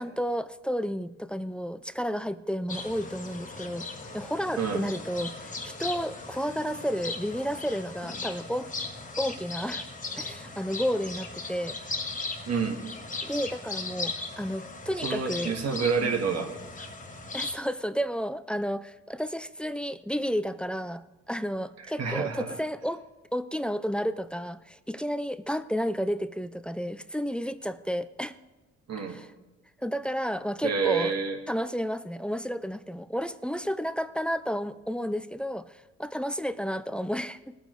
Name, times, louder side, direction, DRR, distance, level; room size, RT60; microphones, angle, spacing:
voice 1, 0.0-3.9 4.1-8.7 9.2-9.8 10.2-11.8 13.2-15.5 16.0-16.1 17.3-23.0 23.3-28.4 29.1-29.3 29.8-31.1 31.5-37.6, equal, 5° left, 12 dB, 0.5 m, -31 dB
sound 1, 2.7-17.5, left 3 dB, 25° left, 1.4 m, -38 dB
voice 2, 4.6-4.9 12.5-12.8 15.0-16.5 22.0-22.6 28.9-29.2 30.6-31.4, right 5 dB, 60° right, 3 dB, 1.9 m, -28 dB
19.5 x 9.2 x 3.3 m, 1.1 s
cardioid pair, 90°, 30 cm